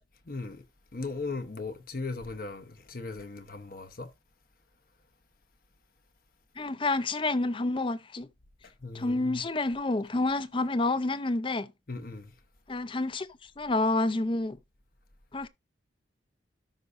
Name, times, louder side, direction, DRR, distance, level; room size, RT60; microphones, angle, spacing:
voice 1, 0.3-0.6 0.9-4.1 8.8-9.4 11.9-12.3, left 3 dB, 50° left, 0.9 m, -37 dB
voice 2, 6.6-8.3 8.9-11.7 12.7-14.6 15.3-15.5, left 2 dB, 25° left, 0.5 m, -29 dB
13.0 x 5.4 x 2.5 m
head